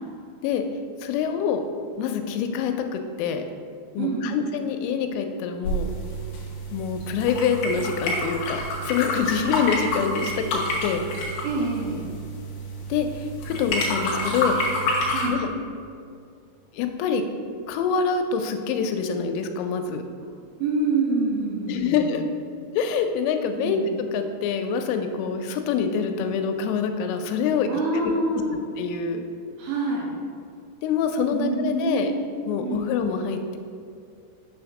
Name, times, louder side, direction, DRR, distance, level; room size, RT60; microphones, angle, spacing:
voice 1, 1.0-1.6 2.0-3.4 4.0-5.9 6.7-11.1 12.9-14.6 15.3-15.5 16.7-17.2 17.7-20.1 21.7-22.3 22.8-23.8 24.1-27.7 28.0-28.1 28.8-29.2 30.8-32.1 32.5-33.6, left 6 dB, 90° left, 6 dB, 3.1 m, -26 dB
voice 2, 4.0-4.4 9.4-9.6 11.4-12.1 13.5-13.6 15.1-15.4 20.6-22.1 23.6-23.9 27.7-28.6 29.6-30.1 31.3-32.2 32.6-32.9, right 3 dB, 75° right, -3 dB, 2.7 m, -26 dB
sound 1, 5.6-15.3, left 1 dB, 70° left, 2.5 m, -28 dB
6.8 x 3.5 x 5.9 m, 2.3 s
omnidirectional pair, 5.6 m